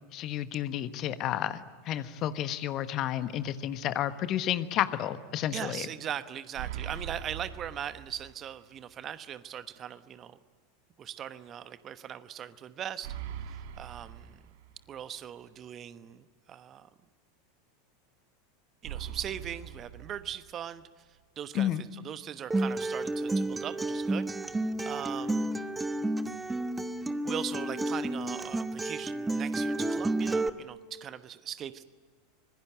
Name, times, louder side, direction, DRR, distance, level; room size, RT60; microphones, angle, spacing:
voice 1, 0.1-5.9 21.5-21.8, left 11 dB, 40° left, 12 dB, 1.3 m, -31 dB
voice 2, 5.5-10.4 11.0-14.4 14.9-16.9 18.8-20.8 21.4-24.3 24.5-25.6 26.5-26.6 27.2-31.8, right 9 dB, 30° right, 13 dB, 1.1 m, -40 dB
sound 1, 6.5-8.6 8.9-9.0 13.0-15.0 18.8-20.8, right 10 dB, 55° right, 1.4 m, -42 dB
Acoustic guitar, 22.5-30.5, right 2 dB, 10° right, 1.1 m, -31 dB
25.5 x 21.5 x 9.1 m, 1.5 s
figure-of-eight pair, 85°, 0 cm